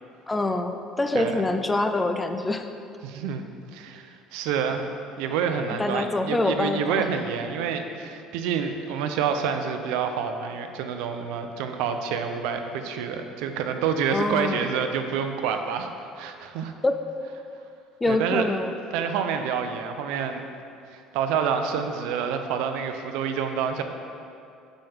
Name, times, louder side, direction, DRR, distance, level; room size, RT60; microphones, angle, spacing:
voice 1, 0.3-2.6 5.8-7.1 14.1-14.6 16.8-17.0 18.0-18.7, left 2 dB, 10° left, 7 dB, 0.4 m, -25 dB
voice 2, 3.0-3.5 3.7-4.9 5.2-15.9 16.2-16.7 18.1-18.5 18.9-20.4 20.9-23.8, right 7 dB, 80° right, 6 dB, 0.7 m, -28 dB
9.0 x 7.2 x 3.5 m, 2.5 s
cardioid pair, 145°, 0 cm